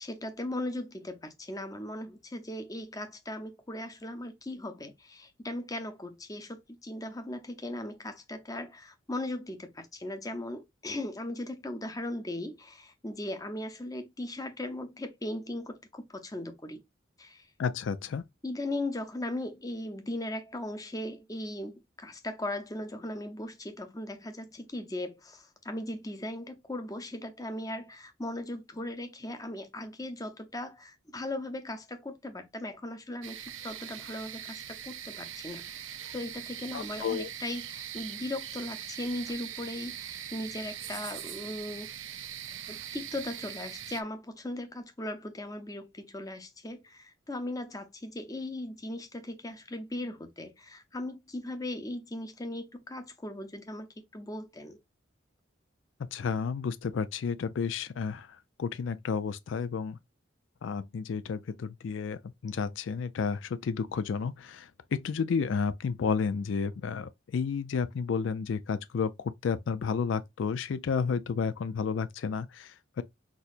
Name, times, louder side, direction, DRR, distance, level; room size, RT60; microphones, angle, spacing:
voice 1, 0.0-16.8 17.2-17.5 18.4-41.9 42.7-54.8, left 1 dB, 20° left, 0.7 m, -38 dB
voice 2, 17.6-18.2 36.7-37.3 56.1-60.0 60.6-73.0, left 5 dB, 75° left, 0.4 m, -31 dB
sound 1, 33.2-44.0, right 10 dB, 85° right, 0.6 m, -41 dB
6.1 x 2.8 x 2.5 m
head